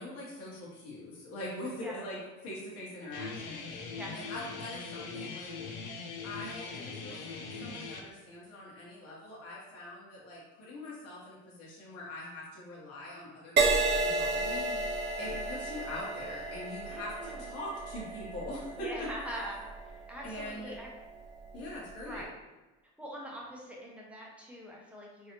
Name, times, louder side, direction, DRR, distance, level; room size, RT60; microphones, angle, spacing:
voice 1, 0.0-5.5 6.2-19.1 20.2-20.8 21.5-22.3, left 1 dB, 50° left, -6 dB, 1.0 m, -43 dB
Guitar, 3.1-8.0, left 4 dB, 80° left, 0.6 m, -41 dB
Crash cymbal, 13.6-21.2 21.9-22.2, right 3 dB, 35° right, 0.5 m, -33 dB
voice 2, 14.5-14.8 15.2-15.5 16.9-17.5 18.8-19.7 20.1-20.9 22.0-22.3 23.0-25.3, equal, 5° right, -3 dB, 0.8 m, -43 dB
3.1 x 2.7 x 2.9 m, 1.1 s
supercardioid pair, 105°, 32 cm